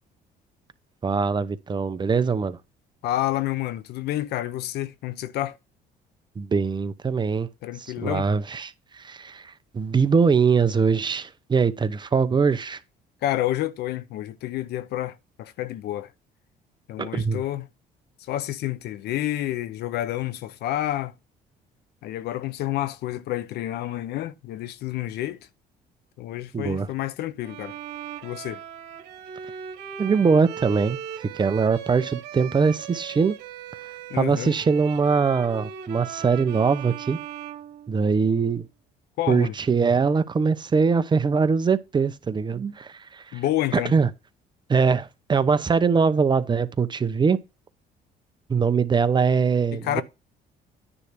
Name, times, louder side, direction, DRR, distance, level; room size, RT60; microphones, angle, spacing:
voice 1, 1.0-2.6 6.4-7.5 8.0-12.8 17.0-17.4 26.5-26.9 30.0-33.3 34.2-37.2 37.9-38.7 39.3-43.4 43.9-44.1 44.7-47.4 48.5-50.0, right 5 dB, 25° right, 0.7 m, -22 dB
voice 2, 3.0-5.6 7.6-8.3 13.2-16.1 16.9-17.7 18.3-21.2 22.0-25.5 26.2-27.8 28.2-28.6 34.1-34.5 39.2-39.5 43.3-43.9 49.7-50.0, left 14 dB, 75° left, 0.7 m, -29 dB
Bowed string instrument, 27.4-38.4, right 9 dB, 85° right, 1.5 m, -39 dB
9.8 x 3.3 x 6.6 m
cardioid pair, 110°, 17 cm